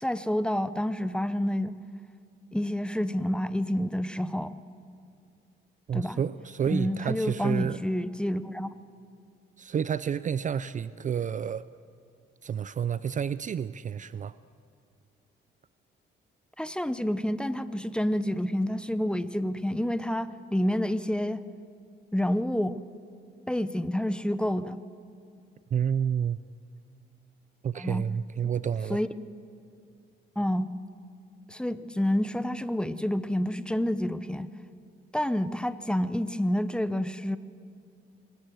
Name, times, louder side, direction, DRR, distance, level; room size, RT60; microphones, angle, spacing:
voice 1, 0.0-1.7 2.5-4.6 5.9-6.2 6.7-8.7 16.6-21.4 22.1-22.8 23.5-24.8 27.8-28.1 28.9-29.1 30.4-30.7 31.5-34.5 35.1-37.4, left 1 dB, 5° left, 13 dB, 0.7 m, -28 dB
voice 2, 5.9-7.8 9.6-11.6 12.4-14.4 25.7-26.4 27.6-29.0, right 8 dB, 40° right, 16 dB, 0.4 m, -30 dB
25.0 x 14.0 x 7.8 m, 2.4 s
cardioid pair, 90°, 20 cm